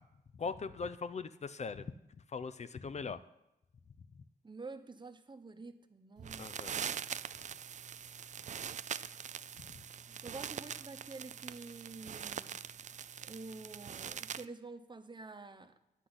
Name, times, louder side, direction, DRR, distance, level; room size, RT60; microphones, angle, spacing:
voice 1, 0.4-1.9 2.3-3.2 6.4-6.8 9.7-9.8, left 5 dB, 45° left, 13 dB, 0.5 m, -40 dB
voice 2, 4.4-7.0 10.1-12.6 13.3-15.7, right 3 dB, 30° right, 8 dB, 0.9 m, -49 dB
sound 1, 6.2-14.5, right 8 dB, 50° right, 0.4 m, -43 dB
10.0 x 5.9 x 7.9 m, 0.88 s
cardioid pair, 85°, 16 cm